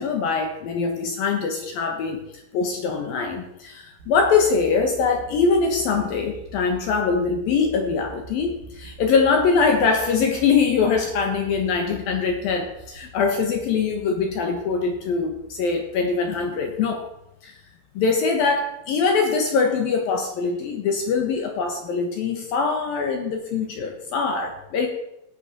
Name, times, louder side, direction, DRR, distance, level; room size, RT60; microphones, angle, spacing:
voice 1, 0.0-17.0 17.4-17.6 18.0-24.9, left 5 dB, 70° left, 3 dB, 2.3 m, -23 dB
sound 1, 4.0-17.2, right 4 dB, 65° right, 3.0 m, -45 dB
17.0 x 6.1 x 6.7 m, 0.87 s
omnidirectional pair, 5.8 m